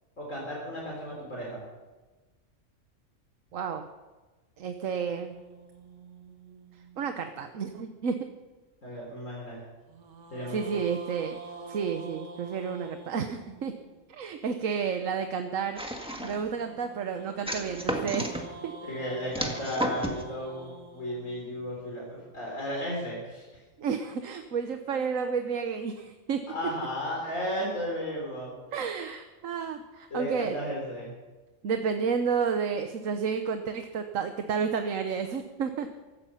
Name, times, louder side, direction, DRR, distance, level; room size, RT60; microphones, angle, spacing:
voice 1, 0.2-1.6 8.8-9.6 10.3-10.7 18.8-23.4 26.5-28.5 30.1-31.1, equal, 80° left, -3 dB, 3.9 m, -34 dB
voice 2, 3.5-3.9 4.6-5.3 7.0-8.2 10.5-11.4 11.7-13.7 14.1-15.8 16.2-18.7 23.8-26.4 28.7-30.6 31.6-35.9, right 6 dB, 85° right, 6 dB, 1.3 m, -31 dB
sound 1, 5.2-7.6 9.9-14.1 16.2-22.4, right 2 dB, 65° right, 1.9 m, -47 dB
sound 2, 15.8-16.5 17.5-18.4 19.3-20.2, right 1 dB, 5° right, 1.7 m, -32 dB
16.0 x 14.0 x 5.7 m, 1.2 s
omnidirectional pair, 1.3 m